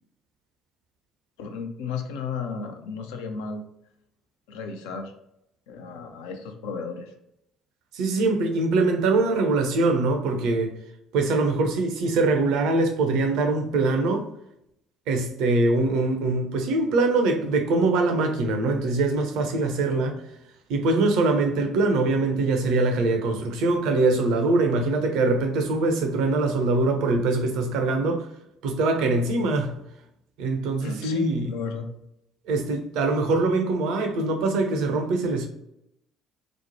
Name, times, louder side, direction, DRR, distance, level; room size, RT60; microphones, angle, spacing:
voice 1, 1.4-3.6 4.5-5.1 5.7-7.1 30.8-31.9, left 5 dB, 65° left, 5 dB, 0.4 m, -34 dB
voice 2, 7.9-10.7 11.1-14.3 15.1-20.2 20.7-28.3 28.6-29.8 30.4-31.5 32.5-35.5, right 3 dB, 60° right, 4 dB, 0.5 m, -23 dB
3.0 x 2.0 x 2.6 m, 0.79 s
figure-of-eight pair, 50°, 0 cm